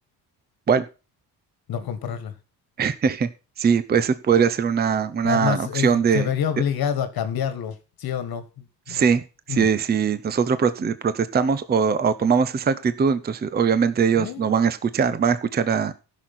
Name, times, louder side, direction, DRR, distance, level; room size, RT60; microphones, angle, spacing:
voice 1, 1.7-2.3 5.2-9.0 9.5-9.7 14.1-14.5, left 8 dB, 60° left, 1.6 m, -27 dB
voice 2, 2.8-3.3 3.6-6.3 8.9-9.2 9.5-15.9, right 6 dB, 25° right, 0.6 m, -21 dB
15.5 x 6.4 x 4.2 m
cardioid pair, 160°, 41 cm